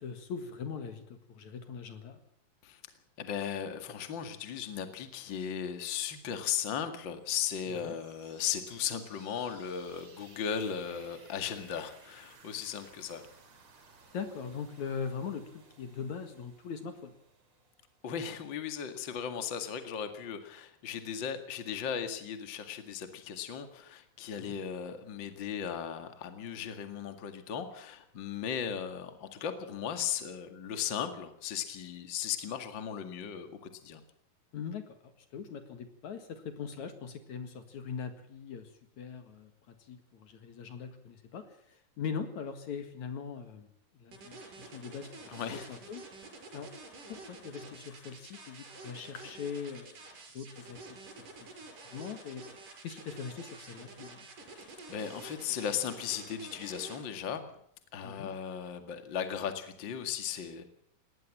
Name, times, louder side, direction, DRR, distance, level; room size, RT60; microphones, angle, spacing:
voice 1, 0.0-2.2 7.8-7.9 14.1-17.1 24.4-24.6 34.5-43.7 43.9-46.1 46.5-46.7 47.1-50.0 50.3-51.0 51.9-52.5 52.8-54.3 58.0-58.3, left 6 dB, 60° left, 9 dB, 3.0 m, -41 dB
voice 2, 3.2-13.2 18.0-34.0 45.3-45.7 54.6-57.5 57.9-60.7, left 8 dB, 40° left, 8 dB, 2.3 m, -37 dB
sound 1, 7.1-18.8, right 4 dB, 50° right, 4.4 m, -59 dB
sound 2, 44.1-57.0, right 3 dB, 70° right, 6.7 m, -49 dB
20.5 x 17.5 x 7.4 m, 0.67 s
omnidirectional pair, 3.9 m